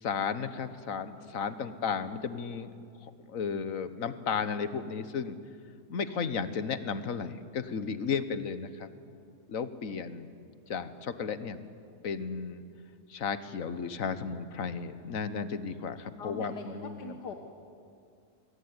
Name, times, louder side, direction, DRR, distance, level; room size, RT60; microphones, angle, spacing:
voice 1, 0.0-2.7 3.3-5.4 5.9-8.9 9.5-10.3 10.7-11.6 12.0-12.6 13.1-17.1, left 6 dB, 55° left, 12 dB, 1.5 m, -34 dB
voice 2, 16.2-17.3, left 4 dB, 80° left, 4 dB, 2.0 m, -41 dB
25.0 x 21.5 x 9.6 m, 2.4 s
omnidirectional pair, 1.7 m